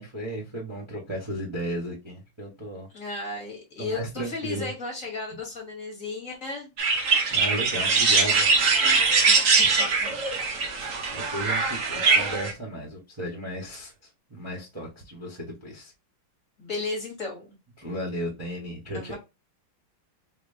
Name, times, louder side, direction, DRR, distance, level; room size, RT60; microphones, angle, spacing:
voice 1, 0.0-2.9 3.8-4.7 7.3-8.5 10.7-13.9 14.3-15.9 17.8-19.2, right 1 dB, 20° right, 0.9 m, -35 dB
voice 2, 2.9-6.7 9.2-10.1 16.6-17.6 18.9-19.2, left 3 dB, 40° left, 1.5 m, -35 dB
sound 1, 6.8-12.5, right 4 dB, 55° right, 0.9 m, -22 dB
4.4 x 2.9 x 2.7 m
omnidirectional pair, 2.3 m